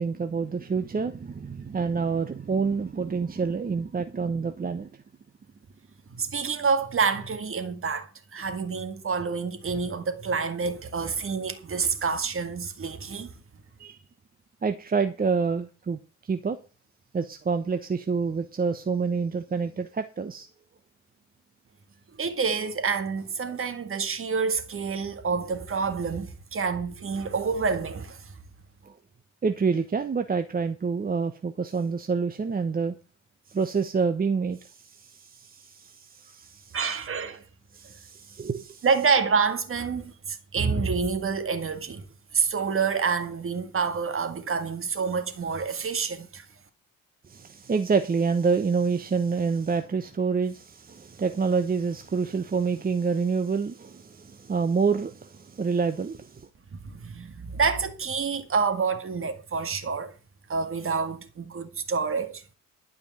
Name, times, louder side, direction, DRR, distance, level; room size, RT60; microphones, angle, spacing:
voice 1, 0.0-4.9 13.8-14.0 14.6-16.6 17.1-20.5 28.8-28.9 29.4-33.0 33.5-36.8 37.7-38.9 47.3-56.5, right 5 dB, 30° right, 1.0 m, -27 dB
voice 2, 6.2-13.3 22.2-28.3 36.7-37.4 38.8-42.1 42.3-46.5 56.7-60.1 60.5-62.4, right 5 dB, 45° right, 2.0 m, -28 dB
12.0 x 5.3 x 8.7 m
cardioid pair, 90°, 30 cm